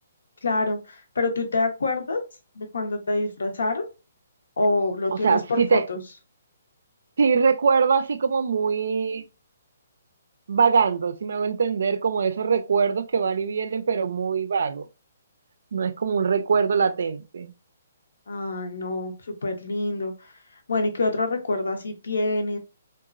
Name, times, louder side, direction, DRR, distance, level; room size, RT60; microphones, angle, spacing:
voice 1, 0.4-2.2 2.6-3.8 4.6-6.0 18.3-19.1 19.4-20.1 20.7-22.6, left 2 dB, 85° left, 0.8 m, -26 dB
voice 2, 5.1-5.8 7.2-9.2 10.5-14.9 15.7-17.5, right 5 dB, 70° right, 0.3 m, -23 dB
2.9 x 2.2 x 2.4 m
hypercardioid pair, 160°, 0 cm